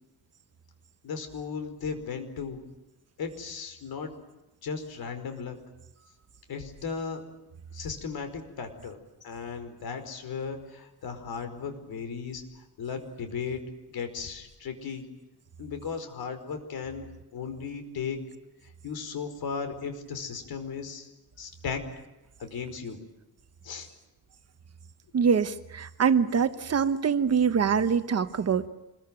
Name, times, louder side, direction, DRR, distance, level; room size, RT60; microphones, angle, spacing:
voice 1, 1.0-2.6 3.2-4.1 4.6-5.6 6.5-7.2 7.7-13.6 13.9-15.0 15.6-17.1 17.3-18.2 18.6-21.1 21.4-21.8 22.4-23.0 23.6-23.9, left 5 dB, 70° left, 8 dB, 4.9 m, -36 dB
voice 2, 25.1-28.7, right 6 dB, 40° right, 11 dB, 1.2 m, -24 dB
26.5 x 22.0 x 9.2 m, 0.94 s
wide cardioid pair, 180°, 38 cm